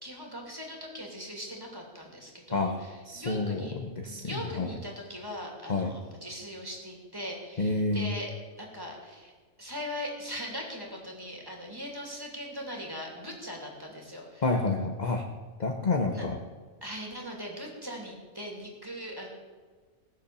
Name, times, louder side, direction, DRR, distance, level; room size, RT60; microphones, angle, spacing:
voice 1, 0.0-3.7 4.0-8.3 8.6-9.3 9.6-14.4 16.1-16.2 16.8-19.3, equal, 15° right, 0 dB, 2.8 m, -40 dB
voice 2, 3.1-4.7 5.7-5.9 7.6-8.1 14.4-15.2 15.6-16.4, left 3 dB, 35° left, 3 dB, 1.0 m, -29 dB
18.5 x 7.3 x 6.9 m, 1.5 s
omnidirectional pair, 1.5 m